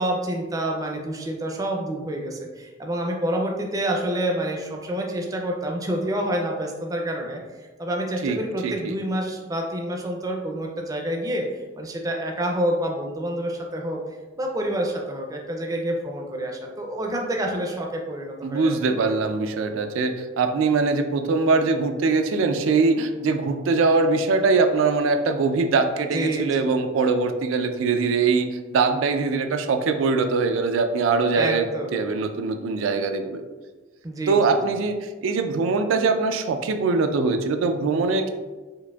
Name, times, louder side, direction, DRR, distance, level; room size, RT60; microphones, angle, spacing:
voice 1, 0.0-14.0 14.4-18.7 26.1-26.8 31.4-32.1 34.0-34.8, right 1 dB, 20° right, 1 dB, 0.4 m, -28 dB
voice 2, 8.6-8.9 18.4-33.4 34.3-38.3, right 4 dB, 90° right, 6 dB, 0.3 m, -22 dB
4.7 x 2.5 x 2.3 m, 1.3 s
head